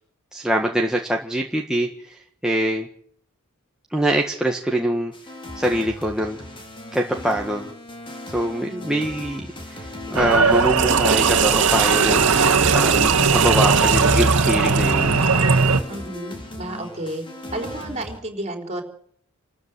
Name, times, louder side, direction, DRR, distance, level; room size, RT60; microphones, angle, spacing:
voice 1, 0.3-2.9 3.9-5.1 5.5-6.4 6.9-7.7 8.3-15.2, right 1 dB, 5° right, 0 dB, 1.7 m, -24 dB
sound 1, 5.1-18.2, left 1 dB, 25° left, 4.0 m, -37 dB
sound 2, 10.1-15.8, right 4 dB, 75° right, 1.8 m, -19 dB
Water / Toilet flush, 10.5-15.7, right 7 dB, 60° right, 2.1 m, -23 dB
voice 2, 15.9-17.2 17.5-18.8, right 1 dB, 30° right, 5 dB, 4.4 m, -31 dB
28.5 x 13.5 x 8.2 m, 0.65 s
head